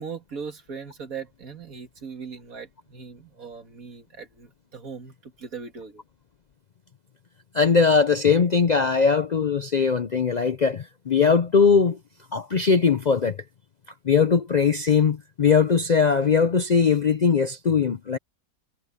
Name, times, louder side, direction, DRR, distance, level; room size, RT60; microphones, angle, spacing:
voice 1, 0.0-6.0, right 6 dB, 65° right, 2.5 m, -39 dB
voice 2, 7.5-12.0 12.3-13.4 14.0-18.2, left 5 dB, 60° left, 0.4 m, -20 dB
omnidirectional pair, 1.6 m